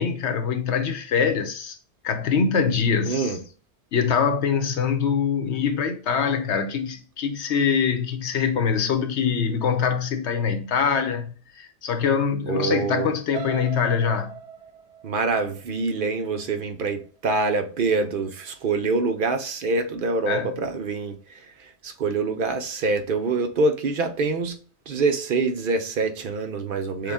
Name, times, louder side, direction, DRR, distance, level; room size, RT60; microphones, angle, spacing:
voice 1, 0.0-1.8 2.0-3.3 3.9-14.4 20.3-20.5 27.0-27.1, left 6 dB, 80° left, 1.0 m, -24 dB
voice 2, 3.1-3.4 12.5-13.1 15.0-24.6 24.9-27.1, right 3 dB, 55° right, 0.8 m, -25 dB
sound 1, 13.3-17.3 17.8-18.1 18.4-18.5, right 8 dB, 85° right, 1.0 m, -40 dB
6.7 x 2.2 x 3.5 m
omnidirectional pair, 1.1 m